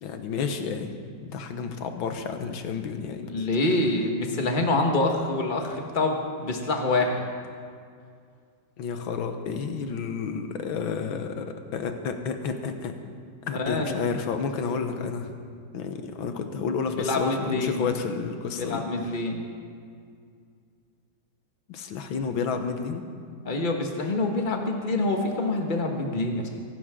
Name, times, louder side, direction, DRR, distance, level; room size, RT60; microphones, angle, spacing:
voice 1, 0.0-0.9 1.2-3.3 8.8-12.9 13.5-15.3 15.7-18.8 21.7-23.0, left 5 dB, 80° left, 7 dB, 1.8 m, -30 dB
voice 2, 3.2-7.2 13.5-14.0 16.9-17.9 18.5-19.4 23.4-26.5, left 2 dB, 25° left, 2 dB, 1.4 m, -26 dB
23.5 x 11.5 x 3.7 m, 2.2 s
omnidirectional pair, 2.2 m